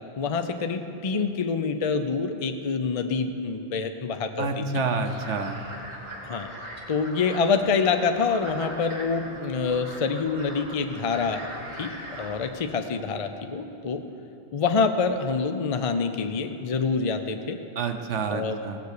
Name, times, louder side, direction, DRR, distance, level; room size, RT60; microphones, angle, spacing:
voice 1, 0.2-4.6 6.2-6.5 6.9-11.5 11.8-14.0 14.5-17.6 18.3-18.6, left 5 dB, 40° left, 7 dB, 0.6 m, -26 dB
voice 2, 4.4-5.6 17.8-18.8, right 4 dB, 85° right, 6 dB, 1.2 m, -28 dB
sound 1, 5.1-12.5, right 1 dB, 40° right, 1.7 m, -40 dB
16.5 x 8.1 x 6.7 m, 2.9 s
omnidirectional pair, 1.2 m